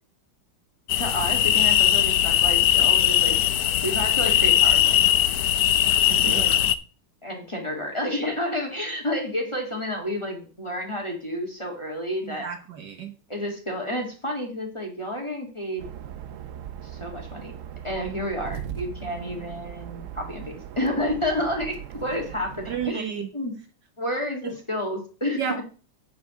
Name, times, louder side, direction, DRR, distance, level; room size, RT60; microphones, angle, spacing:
sound 1, 0.9-6.7, left 11 dB, 80° left, 0.8 m, -20 dB
voice 1, 1.0-3.3 3.8-5.1 6.0-6.5 7.2-12.5 13.3-15.9 16.8-17.5 17.8-23.6 24.0-25.4, left 1 dB, 15° left, 1 dB, 2.0 m, -30 dB
voice 2, 6.3-6.6 12.2-13.1 22.7-23.3 24.4-24.5 25.4-25.6, right 7 dB, 60° right, 5 dB, 1.6 m, -31 dB
sound 2, 15.8-22.9, right 9 dB, 85° right, 0.6 m, -39 dB
8.4 x 4.6 x 7.0 m, 0.37 s
omnidirectional pair, 2.2 m